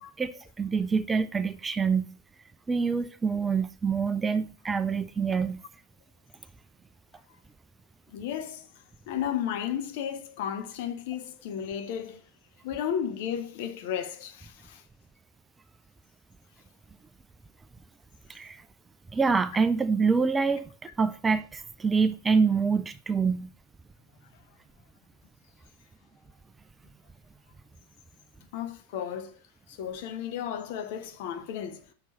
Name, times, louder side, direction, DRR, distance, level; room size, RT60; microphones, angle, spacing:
voice 1, 0.0-2.1 2.7-5.6 18.3-18.6 19.1-23.5, right 5 dB, 15° right, 0.4 m, -26 dB
voice 2, 8.1-8.7 9.1-12.2 12.6-14.8 28.5-29.4 29.7-31.8, left 9 dB, 50° left, 0.8 m, -33 dB
5.9 x 4.5 x 5.5 m
figure-of-eight pair, 90°, 0 cm